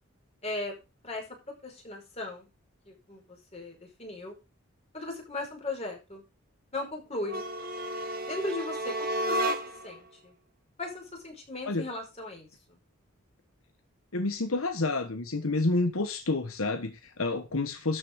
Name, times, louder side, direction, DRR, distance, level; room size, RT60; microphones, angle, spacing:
voice 1, 0.4-0.8 1.0-1.2 1.6-2.5 2.9-4.4 4.9-6.2 6.7-7.5 8.3-9.5 9.8-10.3 10.8-12.5, left 2 dB, 30° left, 5.2 m, -37 dB
sound 1, 7.2-10.0, right 1 dB, 45° right, 1.7 m, -32 dB
voice 2, 14.1-18.0, left 2 dB, 85° left, 1.4 m, -29 dB
13.0 x 6.4 x 4.8 m
head